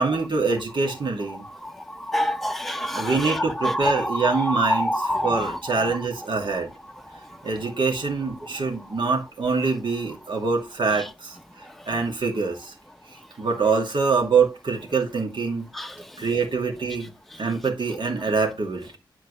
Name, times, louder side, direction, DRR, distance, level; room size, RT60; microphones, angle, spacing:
voice 1, 0.0-1.5 2.9-4.9 5.2-6.7 7.4-12.7 13.4-15.7 16.2-17.1 17.4-19.0, right 4 dB, 70° right, 2.4 m, -25 dB
voice 2, 1.6-6.0 15.7-16.1, equal, ahead, 0.8 m, -27 dB
10.5 x 4.5 x 3.2 m
wide cardioid pair, 80°, 9 cm